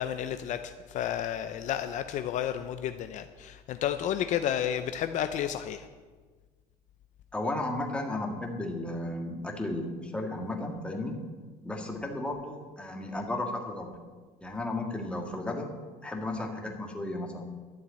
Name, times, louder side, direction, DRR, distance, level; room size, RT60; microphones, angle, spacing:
voice 1, 0.0-5.9, left 10 dB, 50° left, 9 dB, 0.6 m, -31 dB
voice 2, 7.3-11.2 11.6-13.9 14.4-15.7 16.0-17.5, left 2 dB, 5° left, 2 dB, 1.7 m, -34 dB
12.0 x 7.3 x 8.2 m, 1.4 s
cardioid pair, 145°, 16 cm